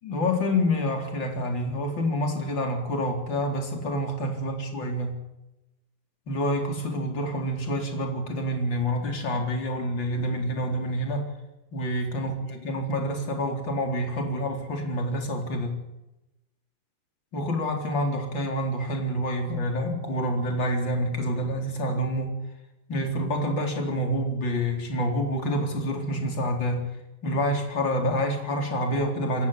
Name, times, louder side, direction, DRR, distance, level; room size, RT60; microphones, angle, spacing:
voice 1, 0.0-5.2 6.3-11.3 11.7-15.7 17.3-22.3 22.9-26.8 27.2-29.5, equal, 30° left, 2 dB, 4.4 m, -27 dB
28.5 x 14.5 x 8.3 m, 0.96 s
omnidirectional pair, 4.1 m